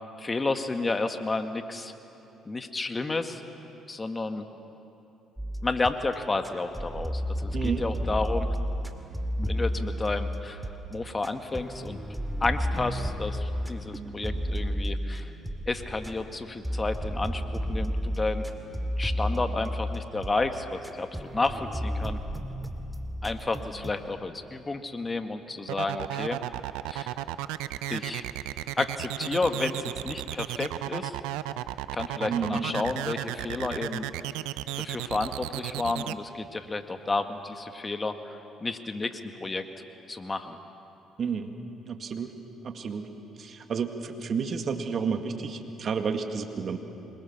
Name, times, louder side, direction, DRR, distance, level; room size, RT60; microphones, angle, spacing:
voice 1, 0.2-1.9 2.4-3.4 3.9-4.4 5.6-8.5 9.4-12.0 12.4-15.3 15.7-18.4 19.0-22.2 23.2-26.4 26.9-27.1 27.9-28.2 28.8-31.2 31.9-34.1 34.8-39.7 40.1-40.6, left 3 dB, 25° left, 7 dB, 1.7 m, -31 dB
sound 1, 5.4-6.1 6.4-10.9 11.2-16.4 16.6-20.5 20.8-23.9, equal, 5° right, 2.3 m, -32 dB
voice 2, 7.5-7.9 32.3-32.7 41.2-41.5 41.9-42.3 42.6-43.1 43.4-46.8, right 6 dB, 50° right, 6 dB, 2.0 m, -31 dB
sound 2, 25.7-36.1, right 15 dB, 80° right, 0.6 m, -34 dB
26.5 x 23.0 x 7.2 m, 2.9 s
hypercardioid pair, 55°, 0 cm